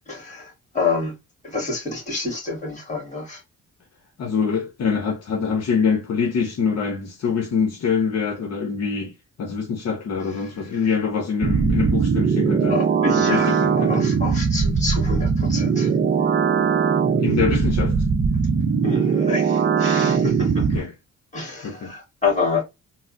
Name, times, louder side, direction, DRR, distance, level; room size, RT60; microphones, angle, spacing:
voice 1, 0.1-1.1 1.4-3.4 12.7-15.9 18.8-20.8 21.3-22.6, left 4 dB, 25° left, 1.9 m, -28 dB
voice 2, 4.2-9.1 9.4-12.8 13.2-14.0 17.2-18.0 20.7-20.9 21.6-21.9, left 6 dB, 55° left, 0.8 m, -24 dB
sound 1, 11.4-20.8, right 6 dB, 35° right, 0.6 m, -20 dB
4.0 x 2.0 x 2.5 m
cardioid pair, 90°, 30 cm